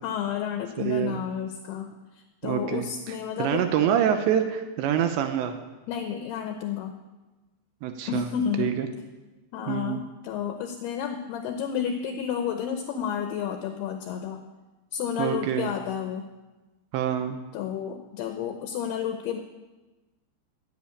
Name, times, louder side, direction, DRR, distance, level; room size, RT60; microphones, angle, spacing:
voice 1, 0.0-1.9 2.4-3.7 5.9-7.0 8.1-8.8 9.5-14.4 14.9-16.3 17.5-19.4, left 8 dB, 75° left, 5 dB, 2.6 m, -31 dB
voice 2, 0.8-1.2 2.4-5.5 7.8-8.3 8.6-8.9 9.7-10.0 15.2-15.7 16.9-17.4, right 9 dB, 80° right, 7 dB, 3.0 m, -26 dB
15.0 x 8.5 x 8.6 m, 1.1 s
omnidirectional pair, 5.3 m